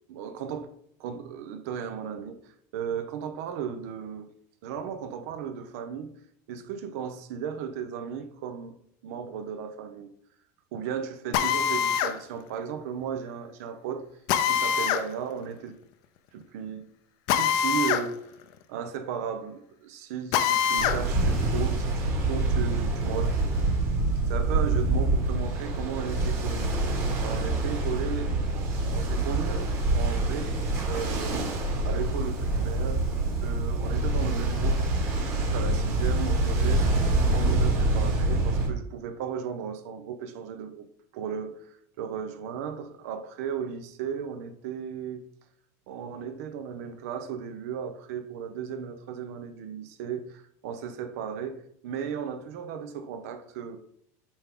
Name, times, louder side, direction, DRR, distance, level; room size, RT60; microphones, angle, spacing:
voice 1, 0.1-0.7 1.0-4.3 4.6-6.2 6.5-8.8 9.0-10.1 10.7-14.1 14.5-15.8 16.3-16.9 17.3-18.2 18.7-23.6 24.3-30.6 30.9-33.1 33.4-34.8 35.1-36.9 37.3-40.9 41.1-45.2 45.9-53.8, right 7 dB, 65° right, 0.9 m, -35 dB
Drill, 11.3-12.2 14.3-15.1 17.3-18.1 18.4-18.5 20.3-21.0, left 8 dB, 50° left, 0.6 m, -24 dB
Ocean, 20.8-38.7, right 2 dB, 30° right, 1.7 m, -26 dB
7.3 x 4.5 x 3.8 m
supercardioid pair, 165°, 9 cm